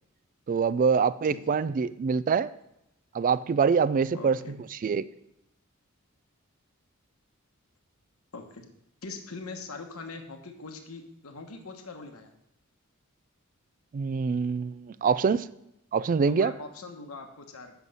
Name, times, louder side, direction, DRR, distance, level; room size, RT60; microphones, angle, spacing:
voice 1, 0.5-2.5 3.1-5.0 13.9-15.5 15.9-16.5, right 5 dB, 40° right, 17 dB, 0.3 m, -25 dB
voice 2, 4.1-4.5 8.3-8.7 9.0-12.3 16.3-17.7, left 3 dB, 80° left, 5 dB, 1.1 m, -42 dB
8.3 x 6.2 x 5.4 m, 0.82 s
head